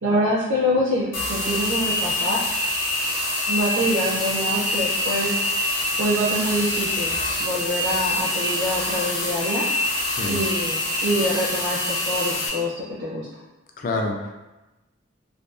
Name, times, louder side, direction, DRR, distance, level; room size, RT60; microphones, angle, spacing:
voice 1, 0.0-2.4 3.5-5.3 6.0-9.7 10.2-13.3, equal, 65° right, -6 dB, 0.4 m, -25 dB
sound 1, 1.1-12.5, left 1 dB, 80° left, 0.7 m, -25 dB
voice 2, 10.1-10.4 13.8-14.3, left 2 dB, 45° left, 1 dB, 0.3 m, -27 dB
2.5 x 2.2 x 2.3 m, 1.0 s
head